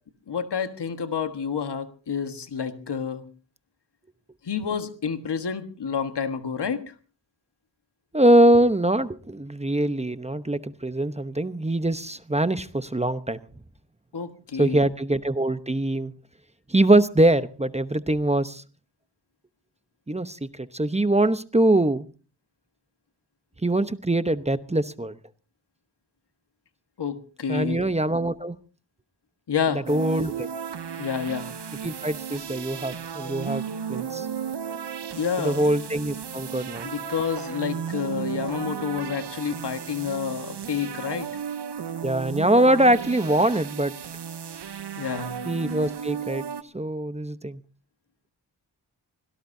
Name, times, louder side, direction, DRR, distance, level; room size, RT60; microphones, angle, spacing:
voice 1, 0.3-3.3 4.4-6.9 14.1-14.8 27.0-27.9 29.5-29.9 31.0-31.5 35.1-35.6 36.8-41.3 45.0-45.4, left 6 dB, 80° left, 8 dB, 1.5 m, -29 dB
voice 2, 8.1-13.4 14.6-16.1 16.7-18.6 20.1-22.1 23.6-25.2 27.5-28.6 29.9-30.5 31.8-33.6 33.9-34.3 35.4-36.9 42.0-43.9 45.5-46.4 46.7-47.6, right 1 dB, 15° right, 12 dB, 0.9 m, -23 dB
sound 1, 29.9-46.6, right 7 dB, 80° right, 0.9 m, -34 dB
24.5 x 17.5 x 2.7 m, 0.37 s
wide cardioid pair, 70°, 40 cm